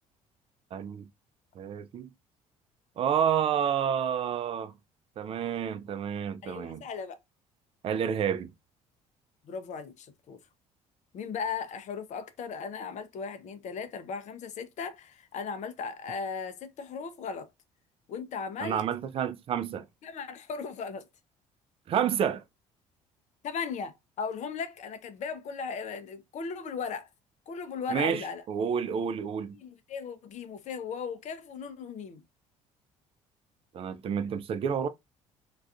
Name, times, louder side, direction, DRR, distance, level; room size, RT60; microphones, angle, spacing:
voice 1, 0.7-1.0 1.6-2.1 3.0-4.7 5.2-6.8 7.8-8.5 18.6-19.8 21.9-22.4 27.9-29.5 33.7-34.9, right 8 dB, 35° right, 0.3 m, -29 dB
voice 2, 6.4-7.2 9.4-10.4 11.1-17.5 18.1-18.8 20.0-21.1 23.4-27.1 27.5-28.4 29.5-32.2, left 5 dB, 40° left, 0.5 m, -37 dB
2.4 x 2.3 x 2.3 m
figure-of-eight pair, 50°, 18 cm